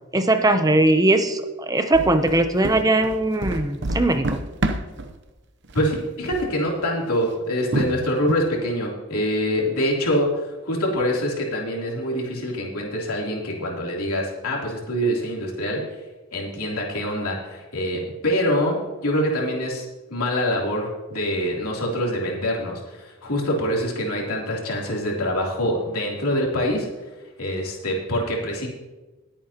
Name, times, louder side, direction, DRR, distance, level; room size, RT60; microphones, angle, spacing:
voice 1, 0.1-4.4, right 2 dB, 15° right, 8 dB, 0.6 m, -20 dB
sound 1, 1.9-5.1 5.6-6.0 6.2-6.5 7.0-7.2 7.7-8.3, right 1 dB, 55° right, 0.8 m, -27 dB
voice 2, 5.7-10.3 10.6-15.8 16.3-19.8 20.1-26.9 27.4-28.7, equal, 90° left, -2 dB, 3.2 m, -25 dB
20.5 x 8.7 x 2.9 m, 1.2 s
head